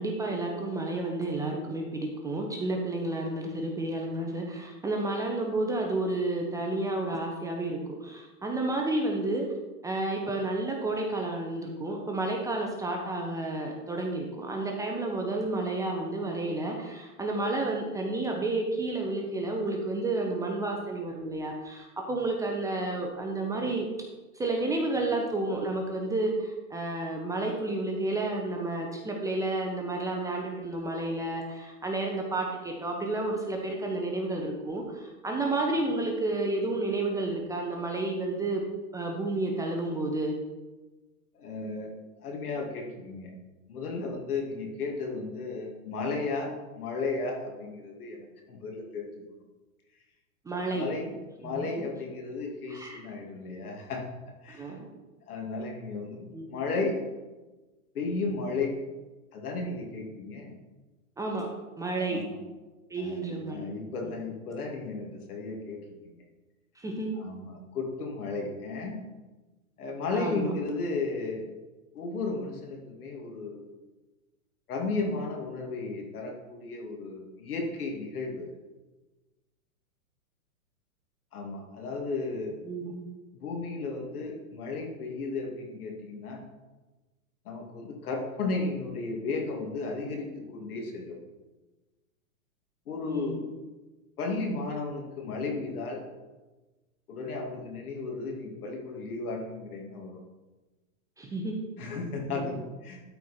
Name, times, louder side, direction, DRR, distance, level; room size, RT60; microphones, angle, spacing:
voice 1, 0.0-9.5 9.8-23.9 24.3-38.6 38.9-40.4 50.5-50.9 51.4-51.7 52.7-53.0 54.5-54.8 56.3-56.6 61.2-61.5 61.8-62.2 62.9-63.7 66.8-67.1 70.1-70.5 82.6-83.0 93.1-93.4 101.2-101.5 102.3-102.5, right 2 dB, 10° right, 0 dB, 0.6 m, -31 dB
voice 2, 41.3-43.3 43.7-49.2 50.7-51.1 51.4-54.0 54.4-54.7 55.3-57.0 57.9-58.8 59.3-60.6 62.1-62.4 63.0-65.8 66.0-66.2 67.2-69.0 69.8-71.5 71.9-73.6 74.7-78.5 81.3-82.5 83.3-86.4 87.4-91.2 92.9-93.5 94.2-96.0 97.1-100.2 101.8-103.0, left 3 dB, 80° left, 1 dB, 2.6 m, -34 dB
12.5 x 4.6 x 4.3 m, 1.2 s
hypercardioid pair, 140°, 44 cm